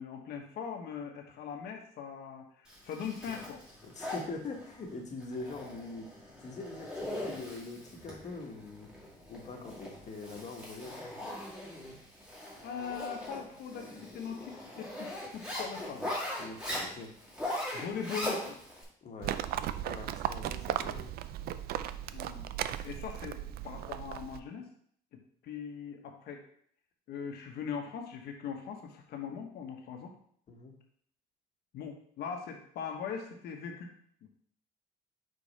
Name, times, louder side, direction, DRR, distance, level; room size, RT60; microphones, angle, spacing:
voice 1, 0.0-3.6 12.6-16.1 17.7-18.6 22.1-22.5 22.8-24.7 25.1-26.4 27.1-30.1 31.7-33.9 34.2-34.3, left 7 dB, 70° left, 3 dB, 1.2 m, -41 dB
Zipper (clothing), 2.7-18.8, left 1 dB, 5° right, 2.1 m, -40 dB
voice 2, 3.8-6.1 6.4-8.9 9.3-11.0 16.4-17.1 19.0-19.5 19.9-21.1 30.5-30.7, left 3 dB, 45° left, 2 dB, 1.3 m, -43 dB
Livestock farm animals working animals, 19.2-24.4, right 11 dB, 65° right, 0.4 m, -36 dB
5.1 x 4.5 x 4.2 m, 0.63 s
cardioid pair, 110°, 17 cm